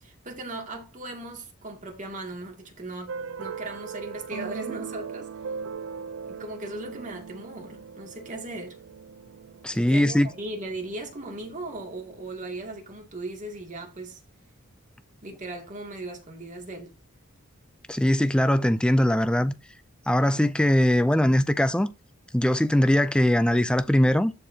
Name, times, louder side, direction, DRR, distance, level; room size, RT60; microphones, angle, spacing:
voice 1, 0.0-5.3 6.3-8.8 9.7-14.2 15.2-16.9, right 2 dB, 35° right, 2.3 m, -38 dB
sound 1, 3.1-12.3, right 6 dB, 70° right, 0.5 m, -39 dB
voice 2, 9.6-10.3 17.9-19.5 20.1-21.9 22.3-24.3, left 1 dB, 5° left, 0.3 m, -21 dB
13.5 x 4.6 x 2.8 m
head